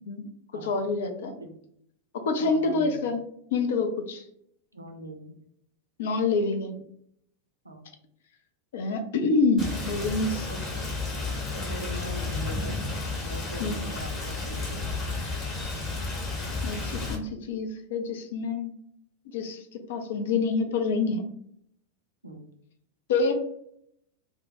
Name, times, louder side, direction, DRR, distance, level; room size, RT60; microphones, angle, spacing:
voice 1, 0.6-1.4 2.1-3.2 3.5-4.2 6.0-6.8 8.7-10.4 13.6-13.8 16.6-18.7 19.3-21.3 23.1-23.3, left 4 dB, 55° left, 6 dB, 0.4 m, -27 dB
voice 2, 2.4-3.0 4.7-5.4 7.6-7.8 10.3-10.9 11.5-12.8 13.2-15.0 22.2-22.4, right 1 dB, 80° right, 4 dB, 0.4 m, -41 dB
Rain, 9.6-17.1, left 3 dB, 25° left, 0.8 m, -32 dB
2.1 x 2.0 x 2.8 m, 0.70 s
figure-of-eight pair, 90°, 0 cm